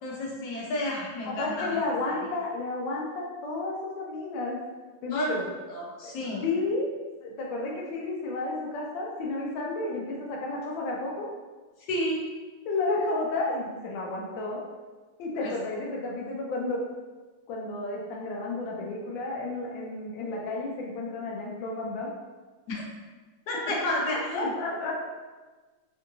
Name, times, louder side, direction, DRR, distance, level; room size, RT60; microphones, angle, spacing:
voice 1, 0.0-1.8 5.1-5.3 5.7-6.4 11.9-12.2 15.4-15.5 22.7-22.8 23.5-24.5, left 1 dB, 65° left, -4 dB, 1.3 m, -30 dB
voice 2, 1.3-4.6 5.0-5.5 6.0-6.1 6.4-6.9 7.2-11.3 12.7-14.6 15.2-16.8 17.5-22.1 24.2-25.0, left 2 dB, 90° left, -2 dB, 1.3 m, -32 dB
3.7 x 2.6 x 2.6 m, 1.3 s
omnidirectional pair, 2.0 m